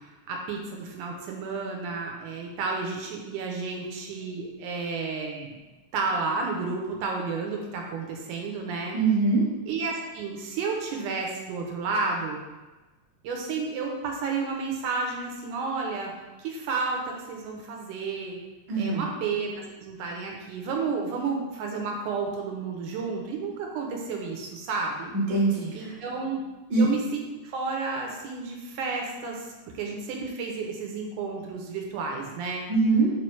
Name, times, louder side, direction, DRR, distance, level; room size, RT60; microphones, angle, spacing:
voice 1, 0.3-5.6 5.9-9.0 9.7-12.4 13.2-16.1 16.4-18.4 18.8-25.1 25.7-26.4 26.8-27.0 27.4-29.4 29.7-32.6, right 4 dB, 80° right, 1 dB, 2.2 m, -31 dB
voice 2, 8.9-9.5 18.7-19.1 25.1-25.9 26.7-26.9 32.7-33.1, right 3 dB, 45° right, -5 dB, 1.6 m, -23 dB
6.8 x 3.1 x 4.6 m, 1.2 s
omnidirectional pair, 3.7 m